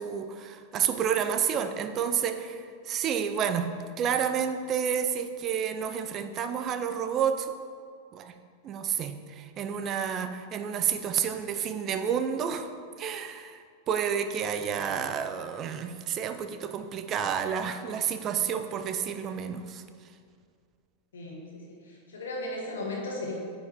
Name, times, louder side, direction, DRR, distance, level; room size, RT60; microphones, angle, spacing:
voice 1, 0.0-3.7 4.0-7.5 8.1-8.3 8.6-12.7 13.0-19.8, right 8 dB, 30° right, 8 dB, 0.5 m, -30 dB
voice 2, 21.1-23.3, left 2 dB, 65° left, -2 dB, 1.7 m, -36 dB
9.3 x 5.1 x 3.7 m, 2.1 s
figure-of-eight pair, 90°, 0 cm